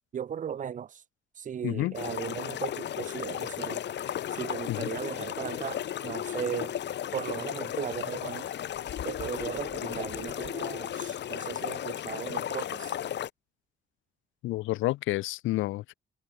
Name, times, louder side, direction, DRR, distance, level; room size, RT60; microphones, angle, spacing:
voice 1, 0.1-1.0 1.4-3.8 4.3-6.8 7.1-8.5 9.0-12.9, right 8 dB, 40° right, 0.6 m, -37 dB
voice 2, 1.6-1.9 4.7-4.9 14.4-15.9, left 17 dB, 80° left, 0.4 m, -29 dB
sound 1, 1.9-13.3, left 10 dB, 60° left, 1.4 m, -35 dB
cardioid pair, 90°, 20 cm